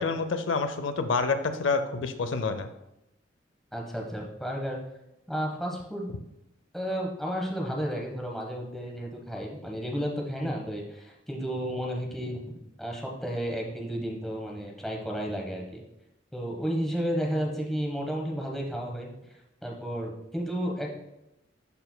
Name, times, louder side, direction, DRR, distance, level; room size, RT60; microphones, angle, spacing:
voice 1, 0.0-2.7, left 4 dB, 85° left, 10 dB, 0.5 m, -28 dB
voice 2, 3.7-4.8 5.3-6.1 6.7-12.4 12.8-15.8 16.3-19.1 19.6-20.9, equal, ahead, -1 dB, 1.0 m, -32 dB
12.0 x 4.4 x 2.2 m, 0.88 s
head